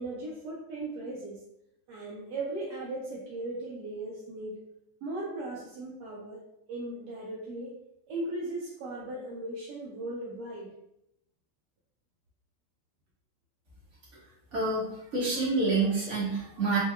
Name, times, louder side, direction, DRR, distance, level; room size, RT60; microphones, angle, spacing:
voice 1, 0.0-1.4 1.9-4.6 5.0-6.4 6.7-7.8 8.1-10.7, right 2 dB, 75° right, -4 dB, 0.9 m, -37 dB
voice 2, 14.5-16.8, right 3 dB, 40° right, -7 dB, 1.3 m, -28 dB
4.5 x 2.2 x 2.2 m, 0.80 s
omnidirectional pair, 2.3 m